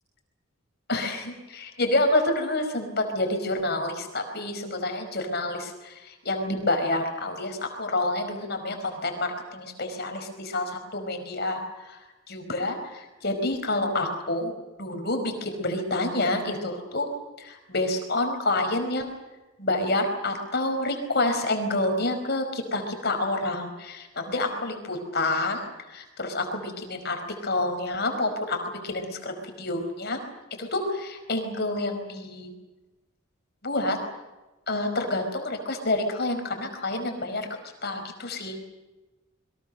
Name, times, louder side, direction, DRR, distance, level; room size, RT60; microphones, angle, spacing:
voice 1, 0.9-14.5 14.8-17.1 17.4-19.1 19.6-30.2 30.6-32.5 33.6-34.0 34.7-37.5 37.8-38.6, left 2 dB, 50° left, 5 dB, 4.9 m, -28 dB
29.0 x 23.0 x 6.6 m, 1.1 s
head